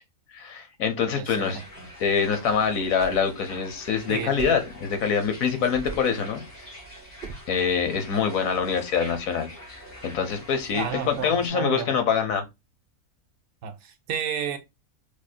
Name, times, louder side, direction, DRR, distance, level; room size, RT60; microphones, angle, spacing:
voice 1, 0.3-1.6 2.0-6.4 7.5-12.4, left 6 dB, 70° left, 1.1 m, -25 dB
voice 2, 1.1-1.6 4.1-4.4 10.7-11.9 13.6-14.6, right 7 dB, 70° right, 1.0 m, -31 dB
sound 1, 1.3-11.5, equal, 90° left, 2.7 m, -45 dB
sound 2, 2.8-3.3 4.4-4.7 5.7-6.2 7.2-7.5, right 5 dB, 50° right, 0.6 m, -38 dB
4.9 x 2.0 x 2.4 m
omnidirectional pair, 1.6 m